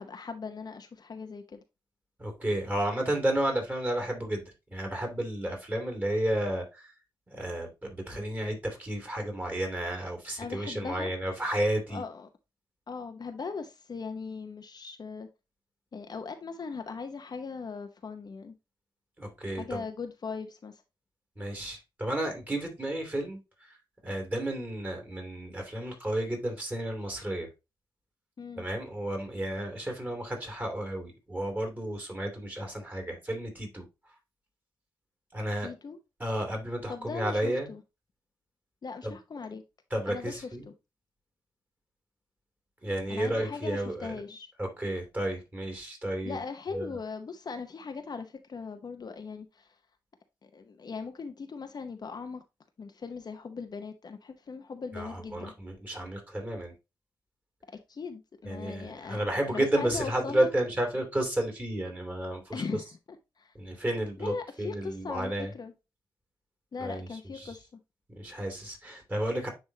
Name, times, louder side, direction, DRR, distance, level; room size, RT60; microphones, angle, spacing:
voice 1, 0.0-1.6 10.4-11.1 11.9-12.3 12.9-15.3 15.9-18.5 19.5-20.8 28.4-28.6 35.6-36.0 36.9-37.8 38.8-39.6 40.1-40.4 40.7-40.8 43.1-44.5 46.2-49.7 50.4-52.4 52.8-55.5 57.9-60.5 62.5-62.8 63.4-63.5 64.2-65.7 66.7-67.8, left 5 dB, 50° left, 0.8 m, -39 dB
voice 2, 2.2-4.4 4.7-6.9 7.3-12.0 19.2-19.8 21.4-23.7 24.0-27.5 28.6-33.8 35.3-35.7 36.2-37.7 39.0-39.2 39.9-40.7 42.8-44.2 44.6-46.4 46.7-46.9 54.9-56.7 58.4-62.6 63.5-65.5 66.8-67.1 67.3-67.6 68.1-69.5, right 1 dB, 20° right, 3.0 m, -32 dB
9.7 x 3.5 x 2.8 m
cardioid pair, 80°, 9 cm